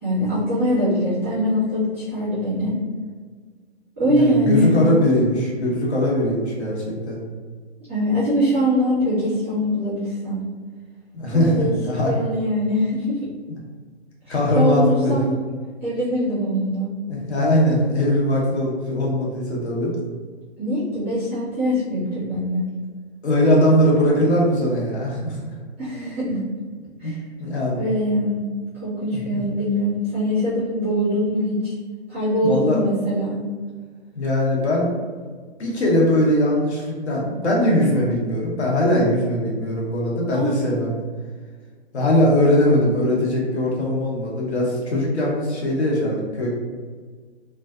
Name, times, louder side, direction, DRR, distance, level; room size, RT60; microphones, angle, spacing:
voice 1, 0.0-2.8 4.0-4.7 7.9-10.4 11.3-11.7 12.0-13.3 14.3-15.3 15.8-16.9 20.6-22.7 25.8-26.5 27.0-27.2 27.8-28.4 28.7-31.7 32.1-33.4 40.3-40.7, equal, 10° right, -13 dB, 0.4 m, -22 dB
voice 2, 4.1-7.2 11.1-12.1 13.5-13.6 14.3-15.3 17.1-19.9 23.2-25.5 27.0-27.1 27.4-27.9 29.3-29.4 32.4-32.8 34.1-34.9 35.6-41.0 41.9-46.5, left 1 dB, 70° left, -3 dB, 1.0 m, -20 dB
2.5 x 2.3 x 2.3 m, 1.5 s
hypercardioid pair, 155°, 34 cm